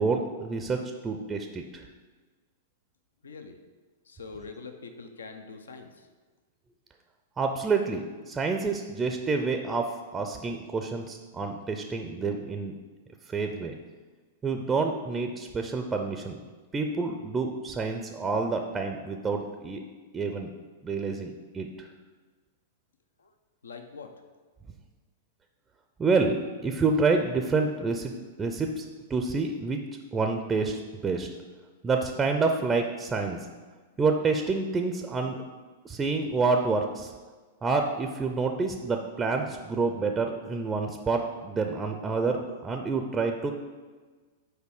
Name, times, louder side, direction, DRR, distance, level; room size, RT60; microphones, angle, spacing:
voice 1, 0.0-1.9 7.4-12.7 13.3-13.7 14.4-16.4 16.7-19.8 20.1-20.5 20.8-21.9 26.0-29.8 30.1-31.3 31.8-33.5 34.0-35.4 35.8-37.1 37.6-43.5, right 4 dB, 15° right, 5 dB, 0.5 m, -28 dB
voice 2, 3.2-3.6 4.0-6.1 23.2-23.3 23.6-24.1, left 4 dB, 75° left, 6 dB, 0.6 m, -44 dB
6.7 x 4.8 x 4.8 m, 1.4 s
figure-of-eight pair, 100°, 0 cm